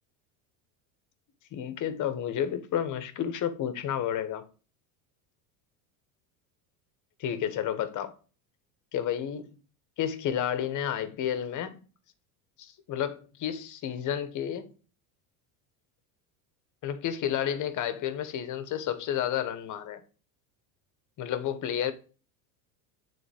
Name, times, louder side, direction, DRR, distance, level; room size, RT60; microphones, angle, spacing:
voice 1, 1.5-4.5 7.2-8.1 8.9-9.6 10.0-11.8 12.6-14.7 16.8-20.0 21.2-21.9, left 9 dB, 45° left, 1.1 m, -31 dB
9.1 x 4.0 x 3.5 m
supercardioid pair, 115°, 44 cm